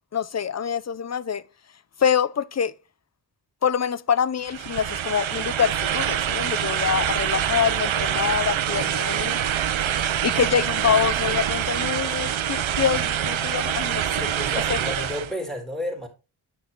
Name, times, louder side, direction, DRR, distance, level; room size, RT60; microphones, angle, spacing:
voice 1, 0.1-1.4 2.0-2.7 3.6-9.4 10.2-14.2 14.7-15.1, left 8 dB, 35° left, 0.6 m, -25 dB
sound 1, 4.4-15.3, right 10 dB, 75° right, 0.8 m, -25 dB
voice 2, 8.5-9.0 9.9-10.0 14.1-16.1, equal, ahead, 3.7 m, -33 dB
9.6 x 6.2 x 2.9 m
cardioid pair, 55°, 48 cm